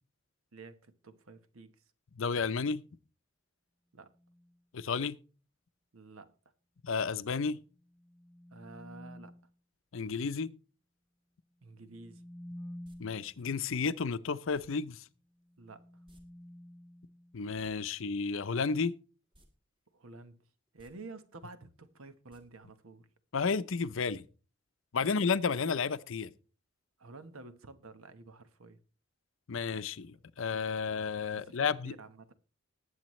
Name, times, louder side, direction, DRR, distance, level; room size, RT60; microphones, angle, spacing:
voice 1, 0.5-1.9 3.9-4.2 5.9-6.4 8.5-9.4 11.6-12.2 15.6-16.0 19.9-23.1 25.0-25.3 27.0-28.8 31.3-32.3, right 3 dB, 85° right, 1.1 m, -51 dB
voice 2, 2.2-2.8 4.7-5.2 6.8-7.6 9.9-10.5 13.0-15.0 17.3-18.9 23.3-24.2 24.9-26.3 29.5-31.9, left 5 dB, 70° left, 0.6 m, -32 dB
sound 1, 4.1-4.6 7.7-9.5 11.7-13.4 15.4-17.7, equal, 15° left, 0.7 m, -50 dB
sound 2, 12.8-13.0 14.5-14.7 16.1-16.2 16.5-16.6 17.4-17.7 19.3-19.5 19.9-20.0 20.7-20.9 22.3-22.4 22.7-22.8, equal, 25° right, 1.9 m, -61 dB
20.0 x 7.9 x 3.1 m
head